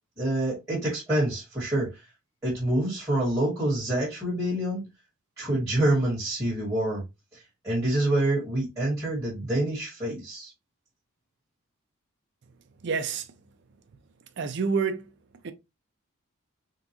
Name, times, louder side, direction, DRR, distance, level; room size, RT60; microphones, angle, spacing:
voice 1, 0.2-1.9 2.4-4.8 5.4-7.0 7.6-10.5, right 1 dB, 15° right, 1.4 m, -26 dB
voice 2, 12.8-13.2 14.4-15.0 15.4-15.5, right 5 dB, 50° right, 0.4 m, -27 dB
3.8 x 2.3 x 2.8 m
head